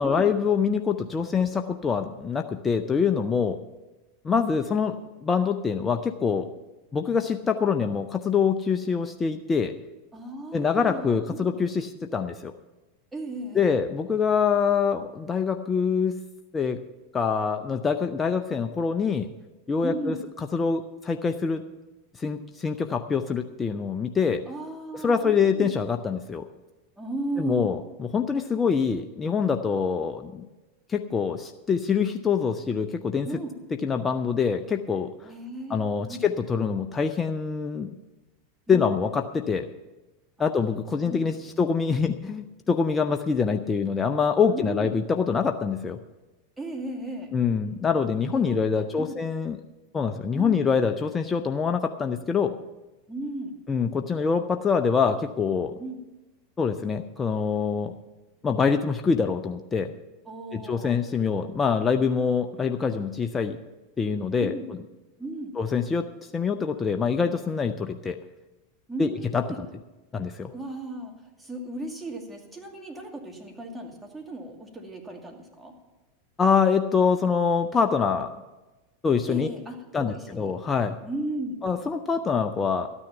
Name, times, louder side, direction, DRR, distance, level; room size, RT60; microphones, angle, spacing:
voice 1, 0.0-3.6 4.2-6.5 6.9-9.7 10.5-12.5 13.5-16.2 16.5-16.8 17.1-19.3 19.7-21.6 22.1-24.4 24.9-26.5 27.4-30.4 30.9-33.3 33.8-35.3 35.7-37.9 38.7-39.6 40.4-46.0 47.3-49.6 49.9-52.6 53.7-55.8 56.6-57.9 58.4-59.9 60.5-63.6 64.0-64.8 65.6-66.1 66.3-68.2 69.0-69.4 70.1-70.5 76.4-78.4 79.0-79.5 79.9-81.0 81.6-82.9, left 6 dB, 20° left, 6 dB, 0.6 m, -25 dB
voice 2, 10.1-11.5 13.1-13.7 19.8-20.2 24.5-25.8 27.0-27.8 33.2-33.5 35.2-35.8 36.0-36.2 38.7-38.9 40.4-40.5 41.0-41.3 44.5-44.9 46.6-47.3 48.2-49.2 50.3-50.6 53.1-53.5 55.8-56.0 60.3-60.9 64.4-64.7 65.2-65.5 68.9-69.6 70.5-71.1 71.4-75.7 79.3-79.8 80.0-80.5 81.0-81.6, right 2 dB, 10° right, 0 dB, 2.4 m, -35 dB
13.0 x 9.8 x 5.8 m, 1.1 s
hypercardioid pair, 90°, 0 cm